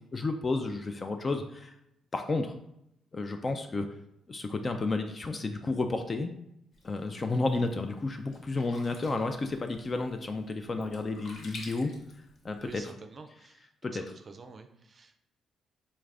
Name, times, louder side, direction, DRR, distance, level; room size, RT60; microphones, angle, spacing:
voice 1, 0.1-1.7 2.1-2.5 3.1-3.9 4.3-6.3 6.8-11.9 12.4-12.8 13.8-14.0, left 3 dB, 35° left, 6 dB, 0.3 m, -31 dB
Sink (filling or washing), 6.7-12.8, left 2 dB, 60° left, 0.8 m, -51 dB
voice 2, 12.6-13.6 14.0-15.2, right 4 dB, 40° right, 7 dB, 0.4 m, -48 dB
4.1 x 2.4 x 3.3 m, 0.79 s
cardioid pair, 90°, 0 cm